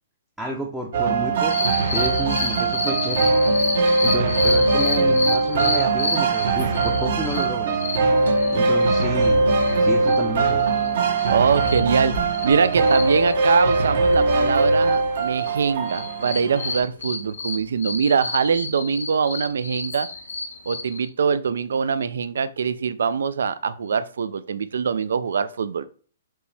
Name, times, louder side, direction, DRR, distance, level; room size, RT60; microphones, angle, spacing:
voice 1, 0.4-3.4 4.0-7.8 8.5-9.5 9.8-10.7, right 1 dB, 5° right, -1 dB, 0.5 m, -31 dB
sound 1, 0.9-16.8, right 3 dB, 60° right, 1.0 m, -21 dB
sound 2, 1.5-9.3 9.6-9.7 10.0-14.2 14.5-15.6 15.9-21.1, left 3 dB, 90° left, 1.2 m, -30 dB
voice 2, 11.3-20.1 20.7-25.9, right 6 dB, 80° right, 15 dB, 0.4 m, -23 dB
4.4 x 2.9 x 3.3 m, 0.42 s
hypercardioid pair, 160°, 0 cm